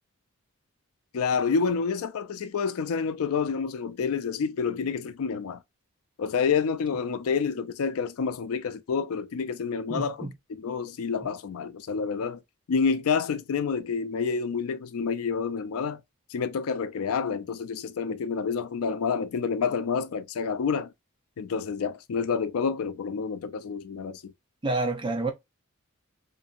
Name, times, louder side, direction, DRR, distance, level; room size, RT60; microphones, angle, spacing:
voice 1, 1.1-5.6 6.2-12.4 12.7-16.0 16.3-20.9 21.4-24.3, left 5 dB, 85° left, 0.4 m, -28 dB
voice 2, 9.9-10.3 24.6-25.3, right 2 dB, 20° right, 0.5 m, -28 dB
2.7 x 2.5 x 2.5 m
head